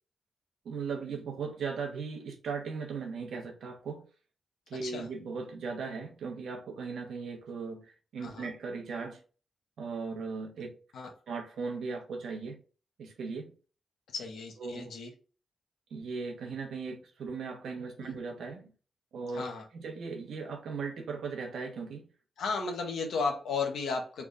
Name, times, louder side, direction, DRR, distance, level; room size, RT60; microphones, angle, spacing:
voice 1, 0.6-4.1 4.7-9.2 9.8-10.7 11.3-12.6 13.0-13.5 14.6-14.9 15.9-18.7 19.1-19.4 19.7-22.1, right 5 dB, 85° right, 0.9 m, -38 dB
voice 2, 14.1-15.1 18.0-18.1 19.3-19.6 22.4-24.3, left 4 dB, 90° left, 0.8 m, -34 dB
3.5 x 2.3 x 3.7 m
cardioid pair, 70°, 0 cm